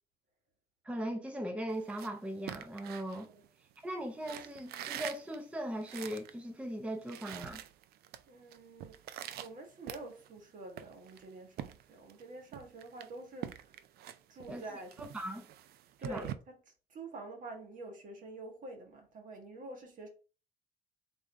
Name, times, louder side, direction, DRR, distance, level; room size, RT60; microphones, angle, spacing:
voice 1, 0.8-3.3 3.8-7.6 14.5-14.6 15.0-15.5 16.0-16.3, right 1 dB, 5° right, 0.5 m, -39 dB
sound 1, 1.7-3.8 4.2-6.4 6.7-6.8 7.0-8.2 8.5-10.4 10.8-12.2 12.5-16.4, right 11 dB, 70° right, 0.4 m, -45 dB
voice 2, 8.3-9.0 9.4-13.8 14.3-15.0 16.0-16.6 16.9-20.1, right 2 dB, 50° right, 1.4 m, -47 dB
3.8 x 3.7 x 3.3 m
cardioid pair, 110°, 17 cm